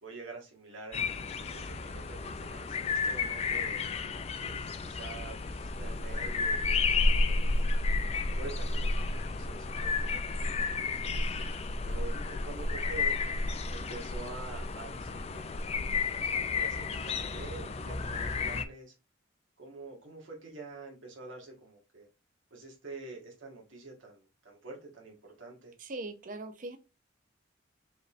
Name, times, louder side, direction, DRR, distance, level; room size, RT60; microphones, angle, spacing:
voice 1, 0.0-1.1 1.5-3.9 4.4-7.6 8.3-11.2 11.8-13.1 13.7-15.8 16.5-18.9 19.6-22.1 22.5-25.7, right 3 dB, 90° right, 1.6 m, -47 dB
sound 1, 0.9-18.6, left 3 dB, 30° left, 0.4 m, -32 dB
voice 2, 25.8-26.8, right 2 dB, 45° right, 0.6 m, -40 dB
5.0 x 3.3 x 2.5 m
head